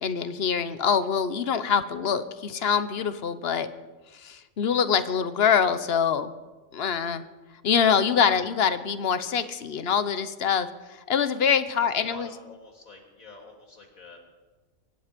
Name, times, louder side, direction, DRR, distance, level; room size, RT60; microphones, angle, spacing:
voice 1, 0.0-3.7 4.1-6.3 6.7-7.2 7.6-10.7 11.1-12.3, left 7 dB, 50° left, 12 dB, 1.0 m, -24 dB
voice 2, 11.8-14.2, left 2 dB, 75° left, 1 dB, 3.3 m, -47 dB
24.0 x 11.0 x 5.2 m, 1.2 s
omnidirectional pair, 1.5 m